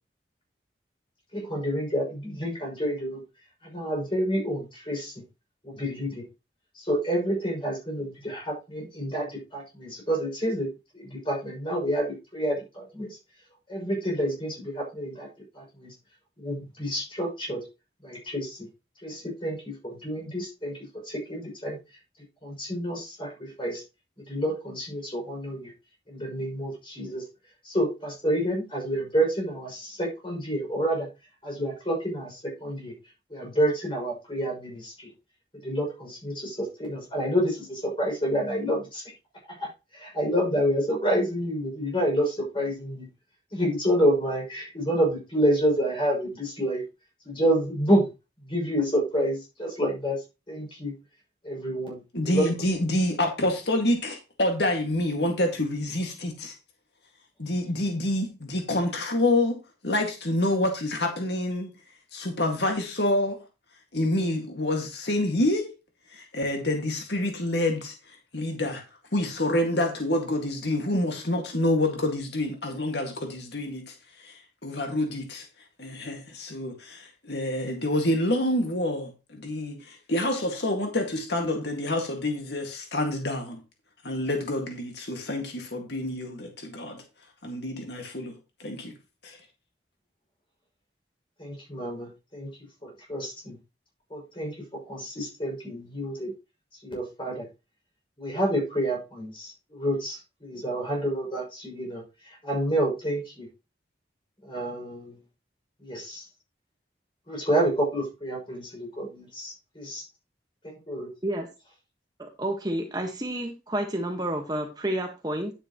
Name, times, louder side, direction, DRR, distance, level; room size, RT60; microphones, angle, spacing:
voice 1, 1.3-3.2 3.6-5.1 5.6-6.2 6.8-10.7 10.9-13.1 13.7-15.3 15.5-15.9 16.4-17.6 18.0-18.6 19.0-20.8 21.0-21.8 22.4-23.8 24.3-25.7 26.1-27.2 27.6-31.1 31.4-32.9 33.3-34.9 35.6-39.0 39.6-39.7 39.9-43.1 43.5-46.8 47.2-48.1 48.4-50.2 50.5-50.9 51.4-52.0 52.2-52.5 91.4-92.5 92.8-93.6 94.1-96.3 96.8-97.4 98.2-102.0 102.4-103.5 104.4-105.1 105.8-106.2 107.3-110.0 110.9-111.1, equal, 30° left, 6.3 m, -28 dB
voice 2, 52.1-56.5 57.4-59.6 59.8-61.7 62.1-63.4 63.9-65.7 66.1-67.9 68.3-68.8 69.1-73.9 74.2-74.3 74.6-75.5 75.8-83.6 84.0-87.0 87.4-88.9 89.2-89.4, left 1 dB, 70° left, 2.0 m, -27 dB
voice 3, 112.2-115.5, right 1 dB, 20° right, 1.4 m, -30 dB
10.0 x 9.0 x 3.0 m
head